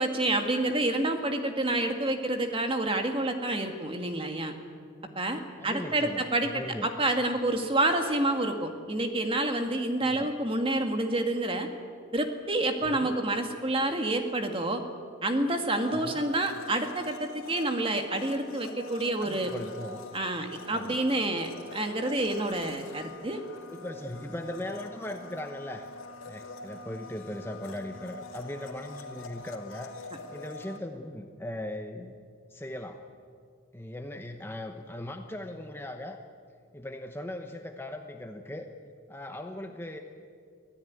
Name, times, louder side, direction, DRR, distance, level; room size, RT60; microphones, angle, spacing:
voice 1, 0.0-4.5 5.2-6.5 6.8-11.7 12.1-14.8 15.2-19.5 20.1-23.4, right 2 dB, 25° right, 5 dB, 1.8 m, -28 dB
voice 2, 5.6-6.9 10.0-10.3 12.8-13.1 15.9-16.2 19.2-20.0 20.7-21.0 23.7-25.9 26.3-32.2 32.5-33.0 33.7-36.2 36.7-38.7 39.1-40.0, left 1 dB, 10° left, 4 dB, 1.0 m, -39 dB
Domestic sounds home sounds, 15.7-30.8, left 2 dB, 90° left, 2.1 m, -45 dB
24.5 x 16.5 x 9.5 m, 2.2 s
head